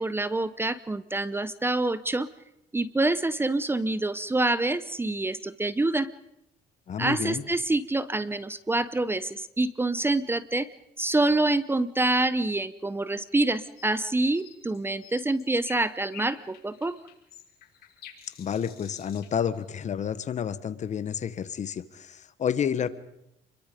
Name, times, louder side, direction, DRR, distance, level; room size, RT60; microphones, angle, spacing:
voice 1, 0.0-2.3 2.7-6.1 7.0-10.7 11.0-17.0, right 2 dB, 15° right, 16 dB, 0.8 m, -26 dB
voice 2, 6.9-7.4 18.4-22.9, left 8 dB, 45° left, 14 dB, 1.3 m, -30 dB
sound 1, 13.3-19.7, left 10 dB, 65° left, 4.4 m, -51 dB
29.0 x 22.5 x 5.3 m, 0.82 s
cardioid pair, 110°, 17 cm